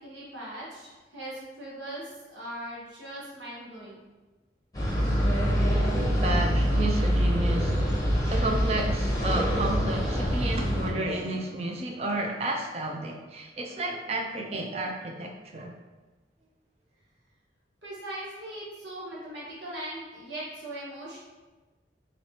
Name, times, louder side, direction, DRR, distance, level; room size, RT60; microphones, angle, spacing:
voice 1, 0.0-4.0 17.8-21.2, right 1 dB, 75° right, -6 dB, 1.3 m, -40 dB
sound 1, 4.7-10.9, equal, 20° left, 0.8 m, -25 dB
voice 2, 5.4-7.8 8.3-15.7, right 2 dB, 35° right, 2 dB, 0.5 m, -32 dB
4.0 x 3.2 x 2.8 m, 1.2 s
head